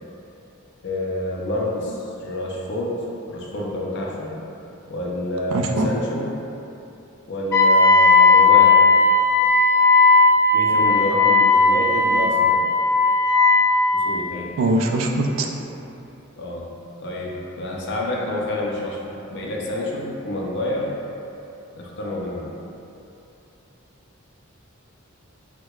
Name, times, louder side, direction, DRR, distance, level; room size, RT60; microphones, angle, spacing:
voice 1, 0.8-4.3 4.9-6.3 7.3-8.8 10.5-12.6 13.9-14.5 16.4-16.7 17.0-20.9 21.7-22.5, left 1 dB, 60° left, -3 dB, 0.5 m, -28 dB
voice 2, 5.5-5.9 14.6-15.5, right 2 dB, 75° right, 2 dB, 0.3 m, -21 dB
Wind instrument woodwind instrument, 7.5-13.8, left 3 dB, 10° left, 0.7 m, -15 dB
4.5 x 2.1 x 2.3 m, 2.8 s
head